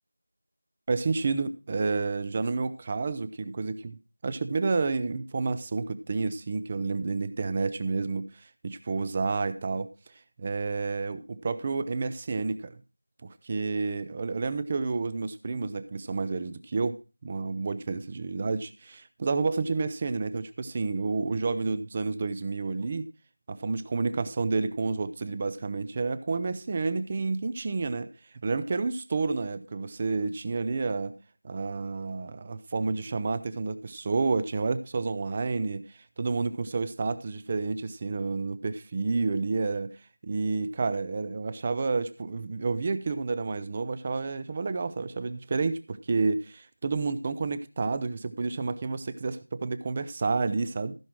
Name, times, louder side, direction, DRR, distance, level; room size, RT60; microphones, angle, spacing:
voice 1, 0.9-9.9 10.4-12.8 13.2-23.1 23.5-28.1 28.4-31.1 31.4-35.8 36.2-39.9 40.2-50.9, right 4 dB, 15° right, 12 dB, 0.4 m, -30 dB
14.5 x 6.0 x 4.4 m, 0.32 s
figure-of-eight pair, 175°, 0 cm